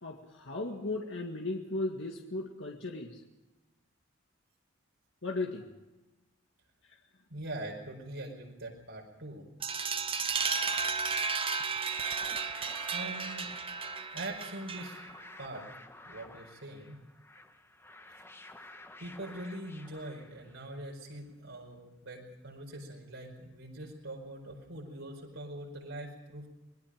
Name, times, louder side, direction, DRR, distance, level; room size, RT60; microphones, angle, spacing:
voice 1, 0.0-3.2 5.2-5.6 6.9-7.0, left 2 dB, 70° left, 1 dB, 1.9 m, -36 dB
voice 2, 7.3-9.4 12.9-13.5 14.1-15.0 15.4-15.7 16.0-17.0 19.0-26.5, right 1 dB, 85° right, -1 dB, 4.9 m, -43 dB
sound 1, 9.6-15.2, right 5 dB, 30° right, 0.9 m, -33 dB
sound 2, 11.4-20.8, left 2 dB, 10° left, 1.3 m, -52 dB
26.5 x 20.0 x 5.0 m, 1.0 s
head